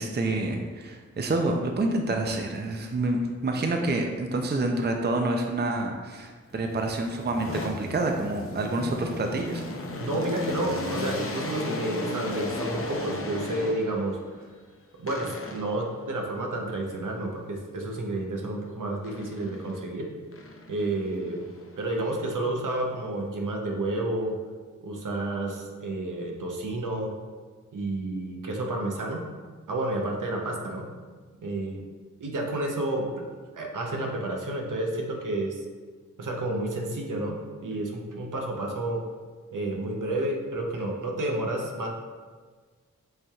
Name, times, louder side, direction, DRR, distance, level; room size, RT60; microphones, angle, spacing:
voice 1, 0.0-9.6, right 2 dB, 35° right, 3 dB, 0.5 m, -28 dB
sound 1, 6.5-14.2 15.1-15.9 19.0-19.9 20.3-22.7, left 2 dB, 45° left, 0.6 m, -36 dB
voice 2, 10.0-14.2 15.0-20.1 20.7-21.5 21.8-24.4 24.8-27.1 27.7-29.2 29.7-30.8 31.4-31.8 32.2-33.2 33.5-35.6 36.2-37.4 37.6-39.0 39.5-41.9, right 1 dB, 75° right, 0 dB, 0.8 m, -30 dB
7.8 x 2.8 x 2.4 m, 1.5 s
cardioid pair, 45°, 32 cm